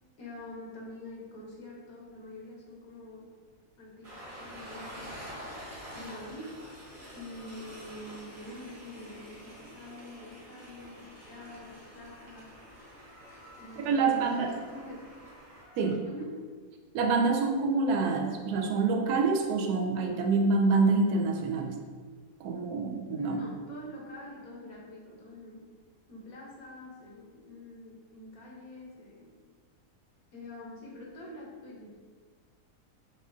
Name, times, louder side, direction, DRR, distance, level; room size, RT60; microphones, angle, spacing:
voice 1, 0.2-3.3 3.8-5.5 5.9-6.6 7.1-12.5 13.6-15.0 16.0-16.5 23.2-25.7 26.1-29.3 30.3-32.0, left 1 dB, 65° left, -3 dB, 1.3 m, -45 dB
Train, 4.0-15.9, equal, 35° right, 0.6 m, -47 dB
voice 2, 13.8-14.5 15.8-16.0 16.9-21.8 22.4-23.4, right 4 dB, 75° right, 2 dB, 1.0 m, -26 dB
6.1 x 2.5 x 2.5 m, 1.5 s
omnidirectional pair, 1.7 m